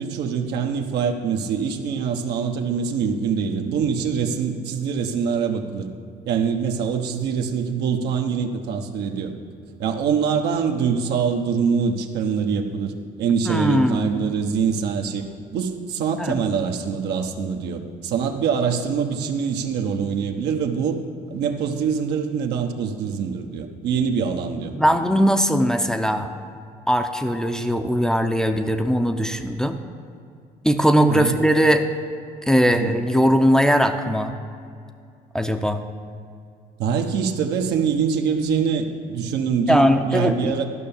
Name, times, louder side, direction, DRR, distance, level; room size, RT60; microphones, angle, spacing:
voice 1, 0.0-5.9 6.2-9.3 9.8-15.2 15.5-21.0 21.3-24.7 31.1-31.4 32.6-33.0 36.8-40.6, right 6 dB, 80° right, 4 dB, 1.1 m, -24 dB
voice 2, 13.5-14.3 16.2-16.4 24.7-26.3 26.9-29.8 30.6-31.8 32.5-34.3 35.3-35.8 39.7-40.5, equal, 5° left, 5 dB, 0.6 m, -20 dB
13.0 x 5.7 x 7.1 m, 2.4 s
cardioid pair, 110°, 17 cm